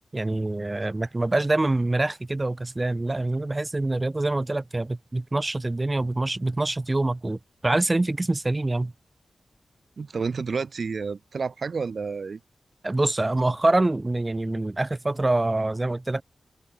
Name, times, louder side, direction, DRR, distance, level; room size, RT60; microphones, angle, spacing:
voice 1, 0.1-8.9 12.8-16.2, right 2 dB, 25° right, 0.4 m, -25 dB
voice 2, 10.0-12.4, right 5 dB, 60° right, 0.8 m, -30 dB
wide cardioid pair, 80°, 0 cm